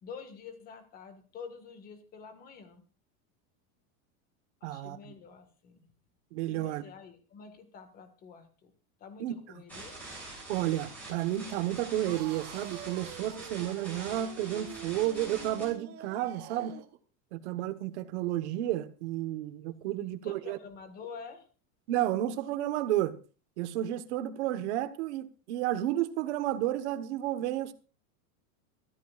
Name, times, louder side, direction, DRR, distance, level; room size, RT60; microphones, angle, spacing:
voice 1, 0.0-2.8 4.6-5.9 6.5-8.7 9.0-10.0 20.0-21.5, left 5 dB, 20° left, 1.7 m, -48 dB
voice 2, 4.6-5.1 6.3-6.8 9.2-9.4 10.5-16.8 17.3-20.6 21.9-23.1 23.6-27.7, right 13 dB, 50° right, 1.3 m, -32 dB
sound 1, 9.7-15.7, right 2 dB, 5° left, 7.1 m, -45 dB
sound 2, 12.0-17.0, right 11 dB, 25° right, 0.9 m, -47 dB
24.0 x 14.0 x 2.5 m
supercardioid pair, 180°, 42 cm